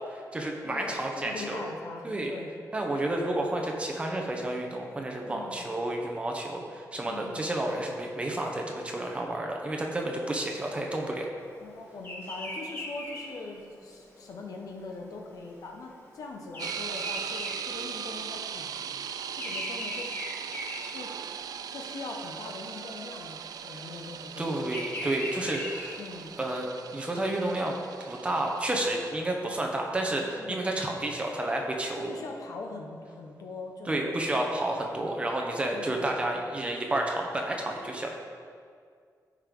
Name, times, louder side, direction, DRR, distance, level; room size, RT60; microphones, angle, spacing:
voice 1, 0.1-1.6 2.0-2.3 2.7-11.3 24.4-26.0 26.4-26.7 26.9-32.1 33.9-38.1, right 1 dB, 20° right, 1 dB, 0.9 m, -31 dB
voice 2, 0.6-2.5 5.2-5.7 7.0-7.4 11.6-18.8 19.3-20.1 20.9-21.1 21.7-24.7 26.0-26.3 30.3-30.8 32.0-34.3 35.0-35.3 35.7-36.1, left 3 dB, 65° left, 1 dB, 1.1 m, -42 dB
Bird vocalization bird call bird song, 12.0-18.4 18.7-21.6 22.0-22.4 23.4-26.3, equal, 35° left, 1.7 m, -39 dB
sound 1, 16.6-29.1, right 8 dB, 75° right, 0.4 m, -39 dB
14.5 x 5.4 x 3.8 m, 2.1 s
wide cardioid pair, 175°, 6 cm